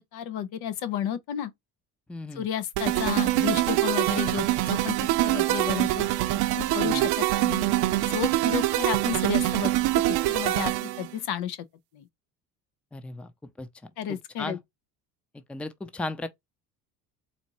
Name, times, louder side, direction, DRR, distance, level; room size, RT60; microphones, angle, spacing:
voice 1, 0.1-1.5 2.4-5.0 5.2-7.7 8.1-9.7 10.3-11.6 11.9-12.0 14.0-14.6, left 9 dB, 70° left, 0.8 m, -32 dB
voice 2, 2.1-2.4 6.8-7.1 12.9-13.3 13.6-14.6 15.3-16.3, left 2 dB, 5° left, 0.4 m, -36 dB
sound 1, 2.8-11.1, right 16 dB, 70° right, 0.7 m, -24 dB
4.3 x 2.6 x 2.9 m
supercardioid pair, 95°, 39 cm